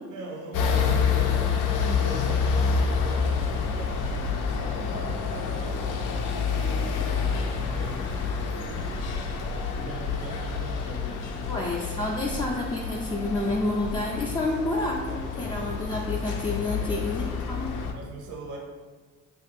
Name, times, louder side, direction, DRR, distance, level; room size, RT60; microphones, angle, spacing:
voice 1, 0.1-9.1 9.7-11.7 16.8-17.1 17.9-18.6, right 2 dB, 80° right, -1 dB, 0.7 m, -41 dB
sound 1, 0.5-17.9, left 5 dB, 85° left, 0.5 m, -28 dB
voice 2, 11.5-17.7, left 2 dB, 15° left, -3 dB, 0.3 m, -29 dB
3.2 x 2.4 x 3.4 m, 1.4 s
cardioid pair, 90°, 30 cm